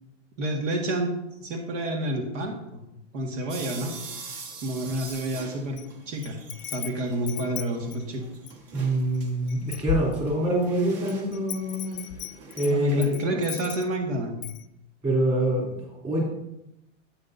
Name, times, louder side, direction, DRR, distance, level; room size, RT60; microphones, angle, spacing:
voice 1, 0.4-1.2 1.4-2.8 3.1-3.9 4.6-5.8 6.1-6.4 6.7-8.2 12.7-14.3, right 1 dB, 80° right, 2 dB, 1.9 m, -29 dB
sound 1, 3.5-13.1, right 4 dB, 50° right, 1.6 m, -44 dB
Wind chime, 5.1-5.9 6.2-8.6 9.1-9.2 9.5-10.6 11.1-14.0 14.4-14.6, left 7 dB, 35° left, 0.5 m, -36 dB
voice 2, 8.7-12.0 12.5-13.4 15.0-16.2, right 1 dB, 20° right, -4 dB, 3.1 m, -25 dB
12.0 x 8.9 x 2.7 m, 0.88 s
supercardioid pair, 170°, 37 cm